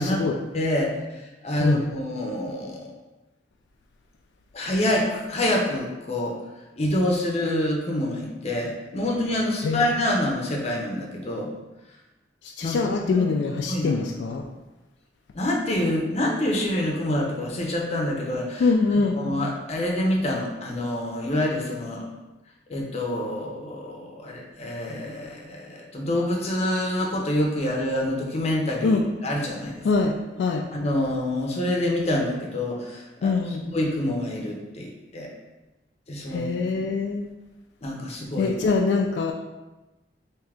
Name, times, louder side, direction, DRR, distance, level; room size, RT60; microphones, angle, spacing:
voice 1, 0.0-0.4 1.6-1.8 9.6-9.9 12.6-14.5 18.6-19.2 28.8-29.0 29.8-30.6 33.2-33.6 36.3-37.2 38.4-39.3, left 4 dB, 75° left, 2 dB, 0.3 m, -23 dB
voice 2, 0.5-2.9 4.5-6.4 6.8-11.5 12.6-13.3 13.7-14.0 15.3-22.1 22.7-29.9 30.7-35.3 36.1-36.5 36.7-36.9 37.8-38.6, left 1 dB, 35° left, -1 dB, 0.7 m, -27 dB
3.6 x 2.7 x 3.4 m, 1.1 s
head